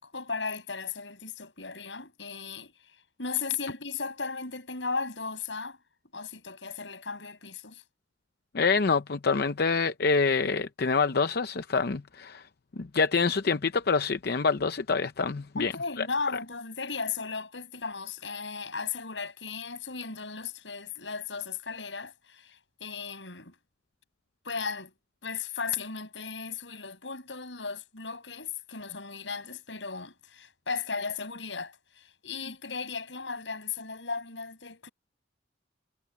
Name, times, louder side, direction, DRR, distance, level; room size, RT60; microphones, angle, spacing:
voice 1, 0.0-2.7 3.2-5.8 6.1-7.8 15.6-23.6 24.4-24.9 25.2-34.9, left 5 dB, 85° left, 6.9 m, -36 dB
voice 2, 8.5-12.4 12.8-15.7 16.0-16.1, left 4 dB, 60° left, 0.7 m, -26 dB
head